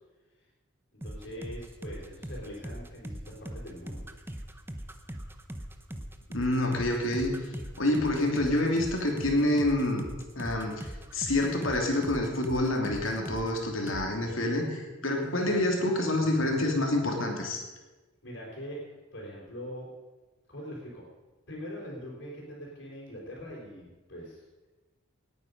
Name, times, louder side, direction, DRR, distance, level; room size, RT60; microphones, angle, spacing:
voice 1, 0.9-4.1 18.2-18.8 19.1-19.9 20.5-21.0 21.5-24.7, equal, 60° left, -4 dB, 4.2 m, -42 dB
sound 1, 1.0-13.6 13.9-14.1, right 1 dB, 10° right, 0.8 m, -40 dB
voice 2, 6.3-7.5 7.8-10.1 10.4-10.8 11.1-17.6, left 1 dB, 75° left, 2 dB, 2.9 m, -27 dB
19.0 x 9.3 x 5.4 m, 1.2 s
head